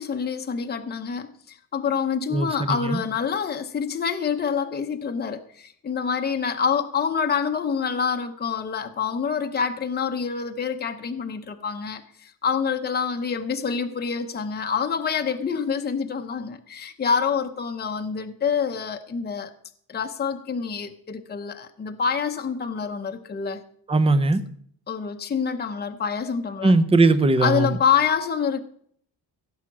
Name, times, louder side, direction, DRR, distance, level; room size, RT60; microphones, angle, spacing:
voice 1, 0.0-19.5 19.9-23.6 24.9-26.7 27.4-28.6, left 6 dB, 25° left, 0.8 m, -26 dB
voice 2, 2.3-3.0 23.9-24.4 26.6-27.8, right 2 dB, 15° right, 0.7 m, -19 dB
16.0 x 7.4 x 6.1 m
cardioid pair, 155°, 39 cm